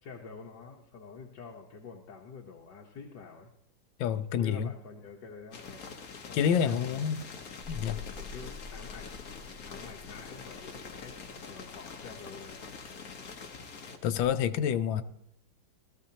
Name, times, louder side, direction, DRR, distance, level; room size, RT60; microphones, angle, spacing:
voice 1, 0.0-3.5 4.3-7.0 7.9-9.2 9.7-11.2 11.5-12.6, left 5 dB, 70° left, 1.7 m, -47 dB
voice 2, 4.0-4.7 6.3-7.2 7.7-8.0 14.0-15.0, left 8 dB, 90° left, 1.4 m, -28 dB
sound 1, 5.5-14.0, left 5 dB, 55° left, 1.5 m, -45 dB
sound 2, 7.6-12.1 14.0-14.3, left 5 dB, 45° right, 3.6 m, -47 dB
15.5 x 14.0 x 2.9 m
omnidirectional pair, 2.0 m